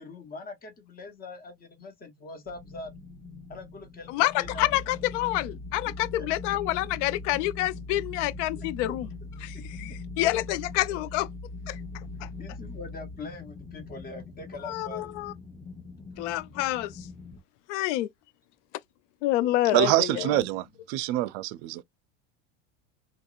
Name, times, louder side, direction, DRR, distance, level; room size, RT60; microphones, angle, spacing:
voice 1, 0.0-2.9 3.5-4.8 5.5-6.6 8.6-9.0 9.5-9.6 12.3-15.2 19.7-20.0, left 3 dB, 25° left, 1.1 m, -43 dB
sound 1, 2.4-17.4, left 3 dB, ahead, 0.6 m, -41 dB
voice 2, 4.1-9.1 9.4-11.3 11.7-11.8 12.1-12.3 14.6-15.3 16.2-16.9 17.7-18.1 19.2-20.4, left 16 dB, 75° left, 0.5 m, -28 dB
voice 3, 19.7-21.8, right 17 dB, 65° right, 0.5 m, -25 dB
3.0 x 2.8 x 2.4 m
supercardioid pair, 110°, 37 cm